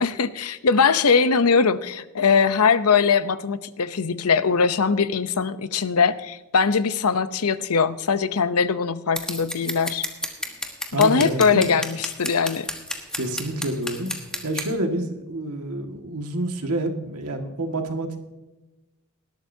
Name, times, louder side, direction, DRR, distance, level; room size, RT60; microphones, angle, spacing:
voice 1, 0.0-10.1 10.9-12.7, left 5 dB, 80° left, 13 dB, 0.7 m, -21 dB
Scissors, 9.2-14.7, left 1 dB, 5° left, 1.4 m, -31 dB
voice 2, 10.9-11.8 13.1-14.1 14.4-18.2, right 1 dB, 85° right, 4 dB, 1.9 m, -28 dB
19.0 x 12.5 x 2.8 m, 1.1 s
head